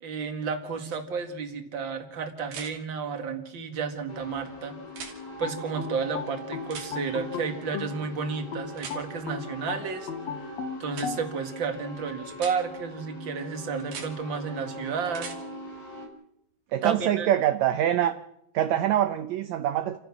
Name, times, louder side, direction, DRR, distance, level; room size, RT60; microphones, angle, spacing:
voice 1, 0.0-4.8 5.4-10.1 10.4-10.5 10.8-15.3 16.8-17.3, right 5 dB, 40° right, 6 dB, 2.4 m, -32 dB
sound 1, 0.9-1.0 2.5-2.7 4.9-5.2 6.7-6.9 8.8-9.0 10.9-11.1 12.3-12.6 13.8-14.1 15.1-15.4 17.4-17.5, right 6 dB, 85° right, 4.4 m, -40 dB
sound 2, 4.1-16.1, left 1 dB, 85° left, 6.1 m, -42 dB
sound 3, 5.4-8.0 8.5-11.2, left 6 dB, 55° left, 2.5 m, -36 dB
voice 2, 16.7-18.1 18.5-20.0, right 11 dB, 70° right, 9 dB, 1.9 m, -24 dB
30.0 x 15.0 x 6.2 m, 0.78 s
omnidirectional pair, 3.9 m